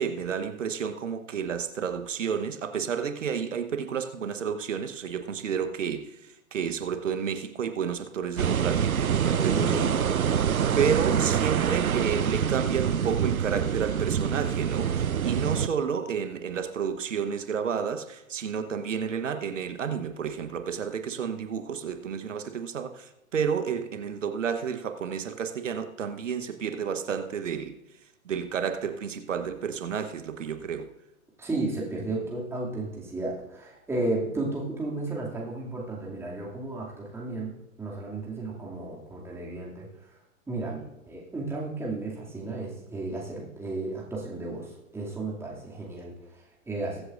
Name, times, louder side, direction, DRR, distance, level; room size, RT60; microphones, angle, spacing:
voice 1, 0.0-9.7 10.7-27.7 28.2-30.9, right 7 dB, 60° right, 8 dB, 1.1 m, -31 dB
sound 1, 8.4-15.7, right 8 dB, 85° right, 0.6 m, -26 dB
voice 2, 9.5-9.9 31.4-37.5 37.8-39.9 40.5-47.0, right 2 dB, 5° right, -4 dB, 2.4 m, -33 dB
22.0 x 7.9 x 2.5 m, 0.91 s
figure-of-eight pair, 115°, 42 cm